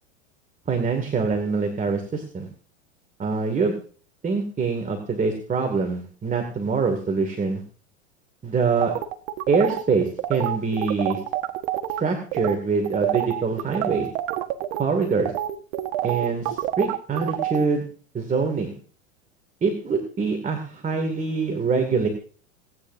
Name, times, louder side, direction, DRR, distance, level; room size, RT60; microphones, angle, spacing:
voice 1, 0.7-2.5 3.2-3.8 4.2-7.6 8.4-8.9 9.5-11.2 12.0-14.1 14.8-15.3 16.0-17.8 18.1-18.7 19.6-22.1, right 4 dB, 20° right, 4 dB, 2.4 m, -24 dB
sound 1, 8.8-12.0 12.3-12.6 12.8-17.7, right 13 dB, 55° right, 1.5 m, -27 dB
28.5 x 9.6 x 2.7 m, 0.42 s
hypercardioid pair, 90°, 38 cm